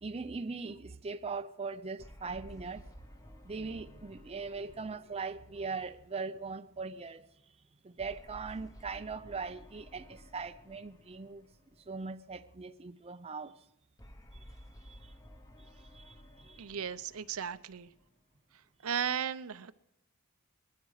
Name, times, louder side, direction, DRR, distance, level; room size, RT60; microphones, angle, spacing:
voice 1, 0.0-2.9 3.4-7.2 7.8-11.5 11.9-13.6 14.3-14.4 14.8-15.1 15.6-16.6, right 4 dB, 25° right, 0.5 m, -40 dB
sound 1, 2.0-6.6 8.0-12.4 14.0-18.6, equal, 15° left, 1.0 m, -55 dB
voice 2, 16.6-17.9 18.8-19.7, right 8 dB, 70° right, 0.7 m, -35 dB
20.0 x 12.5 x 4.9 m
head